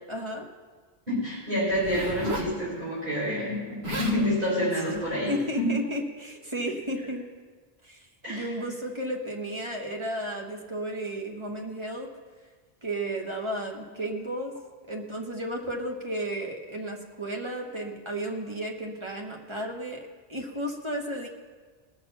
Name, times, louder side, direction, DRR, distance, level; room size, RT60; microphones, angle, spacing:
voice 1, 0.1-0.5 5.3-7.2 7.8-12.1 12.8-14.5 14.9-21.3, right 1 dB, 30° right, 1 dB, 1.2 m, -33 dB
voice 2, 1.1-5.7 8.2-8.4, equal, 55° right, -9 dB, 4.8 m, -28 dB
Zipper (clothing), 1.7-2.6 3.5-3.6 3.8-4.2 4.9-5.2, right 1 dB, 85° right, 1.7 m, -34 dB
18.5 x 6.6 x 5.6 m, 1.4 s
omnidirectional pair, 1.0 m